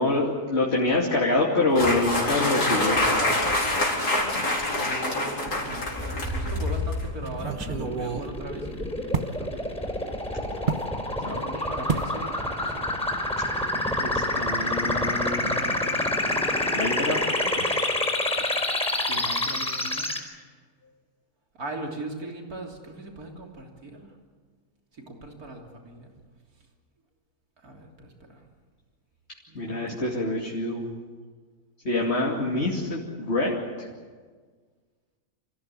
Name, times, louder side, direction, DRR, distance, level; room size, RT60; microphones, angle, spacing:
voice 1, 0.0-3.1 4.3-4.4 11.2-11.6 14.0-15.5 16.7-17.2 17.6-17.9 29.5-30.9 31.8-33.5 33.8-33.9, left 2 dB, 40° left, -2 dB, 2.9 m, -26 dB
sound 1, 1.7-7.3, left 1 dB, 75° left, 4.9 m, -26 dB
voice 2, 4.6-9.7 11.1-13.0 16.0-17.3 19.0-20.1 21.5-24.1 24.9-26.1 27.6-28.4 29.5-29.8, right 2 dB, 65° right, 1 dB, 3.7 m, -40 dB
sound 2, 5.5-6.0 6.4-6.5 7.3-9.4 10.7-10.9 11.9-12.2 12.5-12.8 13.1-13.2, right 5 dB, 35° right, 1.1 m, -31 dB
sound 3, 6.0-20.2, left 1 dB, 5° left, 4.1 m, -28 dB
28.0 x 15.5 x 9.9 m, 1.5 s
omnidirectional pair, 1.7 m